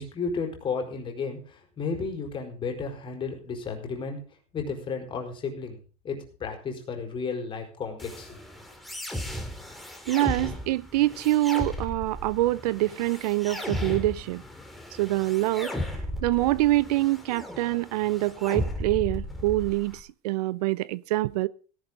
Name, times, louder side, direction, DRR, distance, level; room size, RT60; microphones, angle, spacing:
voice 1, 0.0-4.2 4.5-5.8 6.0-8.4, left 5 dB, 25° left, 4.6 m, -33 dB
sound 1, 8.0-20.0, left 1 dB, ahead, 2.5 m, -36 dB
voice 2, 10.1-14.4 15.0-15.7 16.2-21.5, right 17 dB, 90° right, 0.7 m, -25 dB
17.5 x 11.0 x 3.9 m
supercardioid pair, 150°, 20 cm